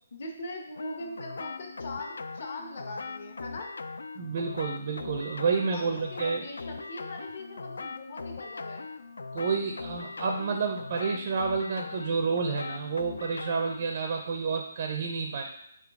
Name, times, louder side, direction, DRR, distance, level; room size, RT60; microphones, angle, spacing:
voice 1, 0.1-3.7 5.7-8.9, left 2 dB, 50° left, 2 dB, 0.8 m, -41 dB
sound 1, 0.8-13.9, left 4 dB, 85° left, 0.3 m, -40 dB
voice 2, 4.2-6.5 9.3-15.4, right 5 dB, 40° right, 3 dB, 0.4 m, -30 dB
4.0 x 3.6 x 3.5 m, 0.73 s
hypercardioid pair, 170°, 0 cm